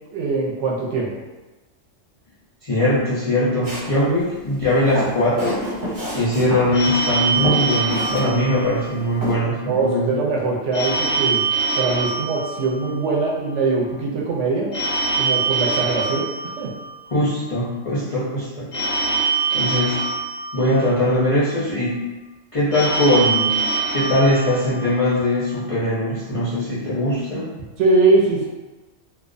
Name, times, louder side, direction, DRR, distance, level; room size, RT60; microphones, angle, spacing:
voice 1, 0.1-1.1 9.7-11.4 11.7-14.7 15.1-16.3 16.6-16.7 27.8-28.5, right 3 dB, 70° right, -3 dB, 0.8 m, -21 dB
voice 2, 2.6-10.1 17.1-18.7 19.5-20.0 20.5-22.0 22.5-23.6 23.9-27.5, left 1 dB, 55° left, -10 dB, 0.3 m, -21 dB
Walk footsteps, 3.6-4.0 4.7-6.7 7.0-7.1 7.4-8.2 8.5-8.6 9.2-9.3, equal, 45° right, 0.9 m, -27 dB
Telephone, 6.7-9.2 10.7-13.2 14.7-17.2 18.7-21.2 22.7-25.2, right 4 dB, 85° left, 1.0 m, -24 dB
2.4 x 2.1 x 2.5 m, 1.1 s
omnidirectional pair, 1.3 m